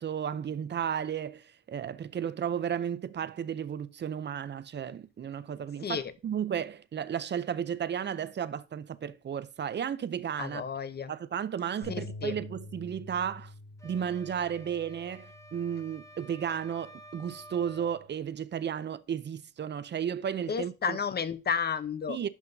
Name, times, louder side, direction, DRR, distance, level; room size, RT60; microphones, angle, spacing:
voice 1, 0.0-10.6 11.1-13.5 13.8-21.0 22.1-22.3, right 8 dB, 35° right, 0.5 m, -33 dB
voice 2, 5.8-6.1 10.4-11.1 11.9-12.4 20.5-22.2, left 6 dB, 35° left, 0.7 m, -32 dB
sound 1, 11.8-18.1, left 2 dB, 65° left, 4.3 m, -48 dB
sound 2, 13.8-18.0, right 1 dB, 10° left, 1.2 m, -51 dB
10.5 x 5.7 x 2.7 m
cardioid pair, 90°, 30 cm